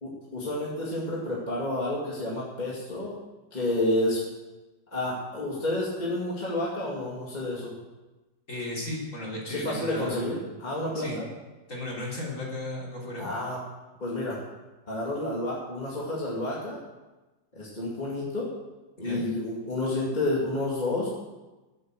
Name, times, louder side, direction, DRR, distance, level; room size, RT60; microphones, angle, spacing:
voice 1, 0.0-3.1 3.5-4.2 4.9-7.7 9.5-11.3 13.2-13.6 14.0-14.5 14.9-16.8 17.5-18.5 19.0-21.1, left 1 dB, 25° left, -5 dB, 2.3 m, -30 dB
voice 2, 8.5-10.4 10.9-11.2 11.7-13.3 19.0-19.2, left 2 dB, 45° left, -4 dB, 3.9 m, -35 dB
13.0 x 7.8 x 7.6 m, 1.1 s
omnidirectional pair, 1.9 m